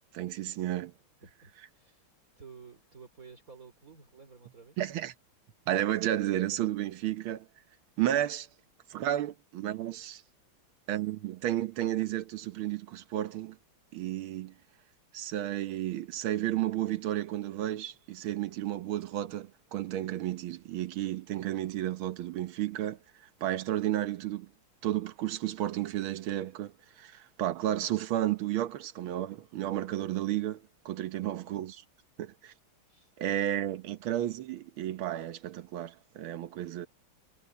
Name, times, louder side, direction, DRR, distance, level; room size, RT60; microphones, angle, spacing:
voice 1, 0.1-0.9 4.8-5.1 5.7-7.5 8.0-8.5 8.9-10.2 10.9-13.6 13.9-14.5 15.1-23.0 23.4-24.5 24.8-26.7 27.0-31.8 32.2-32.5 33.2-36.9, right 13 dB, 80° right, 1.7 m, -32 dB
voice 2, 1.2-2.1 2.4-4.8 31.0-31.1 32.9-33.1, right 5 dB, 40° right, 4.1 m, -53 dB
omnidirectional pair, 2.3 m